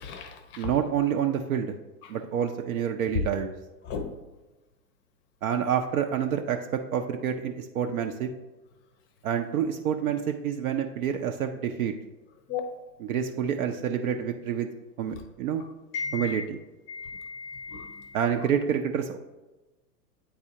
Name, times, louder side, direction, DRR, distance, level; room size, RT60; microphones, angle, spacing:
voice 1, 0.0-0.7 3.9-4.1 12.5-12.7 15.9-16.4 16.9-18.2, left 5 dB, 25° left, 7 dB, 0.6 m, -35 dB
voice 2, 0.6-1.7 2.1-3.5 5.4-8.3 9.2-11.9 13.0-14.7 15.0-15.6 16.1-16.6 18.1-19.2, right 8 dB, 60° right, 4 dB, 0.6 m, -28 dB
8.6 x 4.0 x 2.8 m, 1.1 s
hypercardioid pair, 110°, 48 cm